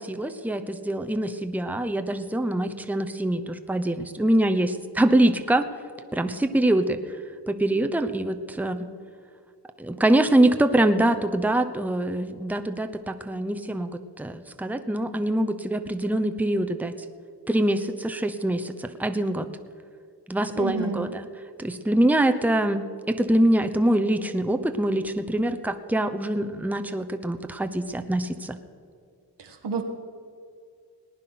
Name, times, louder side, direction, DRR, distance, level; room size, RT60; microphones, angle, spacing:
voice 1, 0.0-5.7 6.1-7.0 7.5-8.9 9.8-16.9 17.5-19.5 20.3-21.2 21.6-28.6, right 1 dB, 5° right, 8 dB, 0.9 m, -24 dB
voice 2, 20.6-21.1 29.4-29.8, right 4 dB, 80° right, 3 dB, 1.8 m, -30 dB
19.0 x 9.7 x 6.0 m, 2.3 s
cardioid pair, 50°, 41 cm